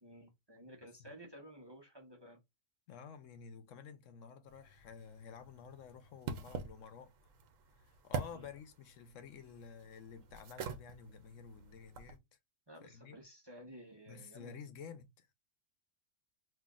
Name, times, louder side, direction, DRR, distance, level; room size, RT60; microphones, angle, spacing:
voice 1, 0.0-2.4 8.3-8.5 12.7-14.5, equal, 20° right, 0.9 m, -54 dB
voice 2, 2.9-7.1 7.8-12.2 12.8-13.2 14.1-15.3, left 6 dB, 75° left, 1.0 m, -52 dB
sound 1, 4.5-12.2, right 5 dB, 85° right, 1.1 m, -46 dB
5.6 x 2.8 x 2.4 m
omnidirectional pair, 1.3 m